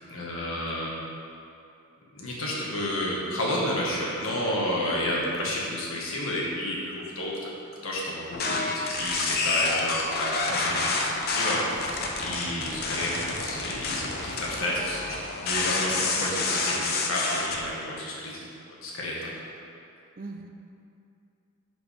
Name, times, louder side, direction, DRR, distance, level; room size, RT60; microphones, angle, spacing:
voice 1, 0.1-1.1 2.1-7.5 7.8-19.3, left 1 dB, 70° left, -4 dB, 1.6 m, -31 dB
sound 1, 8.3-17.6, left 3 dB, 45° left, 0.7 m, -29 dB
voice 2, 12.3-12.9 20.2-20.5, right 2 dB, 40° right, 3 dB, 0.5 m, -40 dB
11.0 x 5.1 x 3.5 m, 2.6 s
head